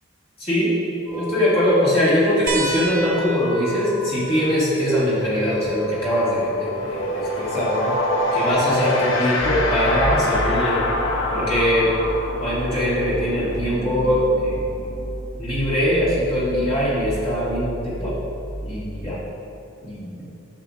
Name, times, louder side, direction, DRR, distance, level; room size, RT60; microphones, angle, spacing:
voice 1, 0.4-7.9 8.3-10.8 11.3-11.9 12.4-14.7 15.4-18.1 18.6-19.2 19.8-20.2, equal, 25° left, -9 dB, 1.7 m, -22 dB
sound 1, 1.1-7.3 7.6-19.0, equal, 10° right, 1.6 m, -33 dB
sound 2, 2.5-7.5 9.1-9.2 10.8-10.9, right 2 dB, 40° right, 0.9 m, -32 dB
sound 3, 4.7-4.9 5.2-15.7, left 1 dB, 65° left, 0.7 m, -26 dB
10.5 x 6.9 x 2.5 m, 2.7 s
head